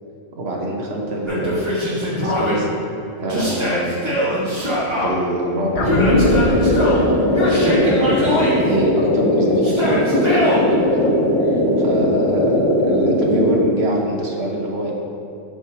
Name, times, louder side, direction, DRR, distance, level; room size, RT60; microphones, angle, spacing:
voice 1, 0.4-2.7 3.2-4.4 4.8-6.2 6.5-11.1 11.4-14.9, right 1 dB, 50° right, -1 dB, 1.1 m, -26 dB
Yell, 1.3-2.5 3.3-5.1 5.8-7.0 7.3-8.6 9.6-10.6, equal, 20° right, 1.5 m, -22 dB
sound 1, 5.7-10.4 10.7-10.8, left 2 dB, 55° left, 0.6 m, -23 dB
sound 2, 6.1-13.6, left 1 dB, 25° left, 0.8 m, -18 dB
7.9 x 6.2 x 2.8 m, 2.7 s
omnidirectional pair, 1.5 m